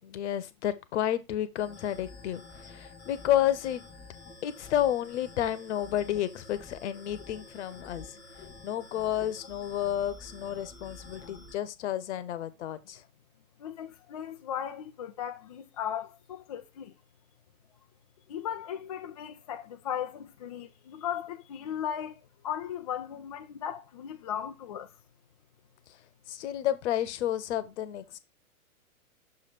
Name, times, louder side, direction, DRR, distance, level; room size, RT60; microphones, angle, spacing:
voice 1, 0.0-2.4 2.7-3.8 4.4-8.1 8.4-13.0 26.3-28.2, left 11 dB, 50° left, 1.0 m, -31 dB
sound 1, 1.6-11.6, left 3 dB, 10° left, 1.6 m, -49 dB
voice 2, 13.6-16.9 18.3-22.2 22.4-24.9, left 9 dB, 30° left, 0.3 m, -37 dB
6.4 x 3.3 x 5.9 m
hypercardioid pair, 125°, 44 cm